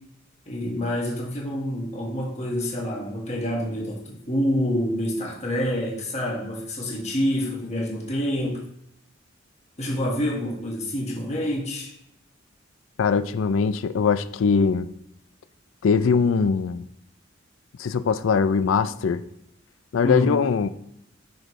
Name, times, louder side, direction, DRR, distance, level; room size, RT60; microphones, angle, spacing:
voice 1, 0.5-8.6 9.8-11.9 20.0-20.4, equal, 35° left, -3 dB, 1.5 m, -27 dB
voice 2, 13.0-14.9 15.8-16.8 17.8-19.2 19.9-20.7, left 5 dB, 85° left, 13 dB, 0.4 m, -21 dB
6.0 x 5.1 x 3.1 m, 0.76 s
head